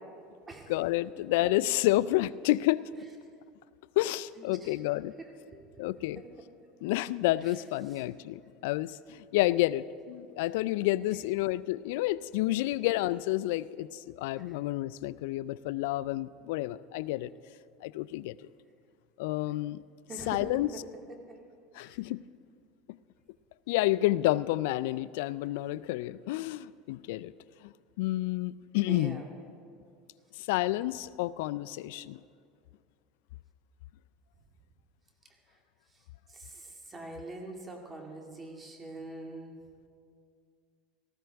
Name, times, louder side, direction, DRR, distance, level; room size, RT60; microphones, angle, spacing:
voice 1, 0.7-2.8 4.0-5.1 5.8-6.2 6.8-17.3 17.8-18.3 19.2-19.8 20.1-20.7 21.7-22.2 23.7-27.3 27.6-29.2 30.4-32.2, left 17 dB, 75° left, 18 dB, 0.3 m, -30 dB
voice 2, 20.1-20.4 28.9-29.2 36.3-36.4 36.9-39.6, right 2 dB, 20° right, 2 dB, 2.1 m, -42 dB
18.0 x 14.5 x 3.4 m, 2.3 s
supercardioid pair, 115°, 0 cm